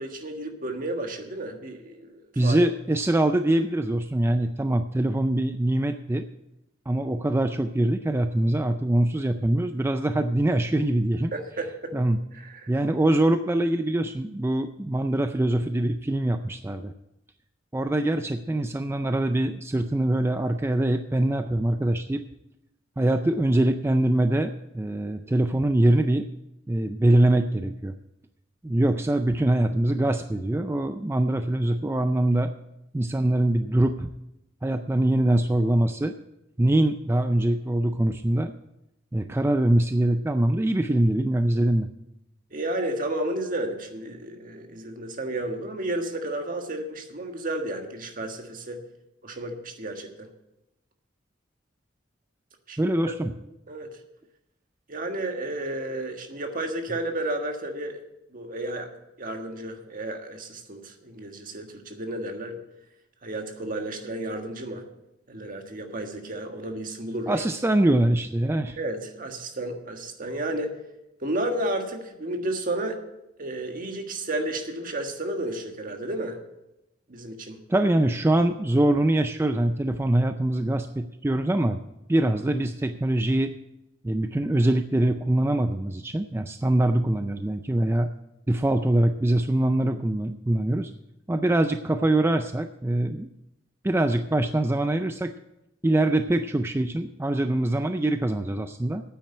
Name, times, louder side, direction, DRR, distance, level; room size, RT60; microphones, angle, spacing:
voice 1, 0.0-2.6 11.3-11.9 12.3-12.7 42.5-48.8 49.2-50.3 52.7-53.2 53.7-54.0 54.9-58.0 58.3-58.9 59.2-62.6 63.2-64.8 65.3-67.4 68.8-70.8 71.2-73.0 73.4-76.4 77.1-77.6, right 1 dB, 45° right, 4 dB, 1.6 m, -32 dB
voice 2, 2.4-6.2 6.9-11.3 11.9-12.2 12.7-16.9 17.7-22.2 23.0-26.3 26.7-27.9 28.6-32.5 32.9-34.1 34.6-36.1 36.6-38.5 39.1-41.9 52.8-53.3 67.3-68.8 77.7-81.8 82.1-83.5 84.0-88.1 88.5-90.9 91.3-93.3 93.8-95.3 95.8-99.0, right 1 dB, 15° right, 8 dB, 0.4 m, -23 dB
9.2 x 8.8 x 7.8 m, 0.89 s
head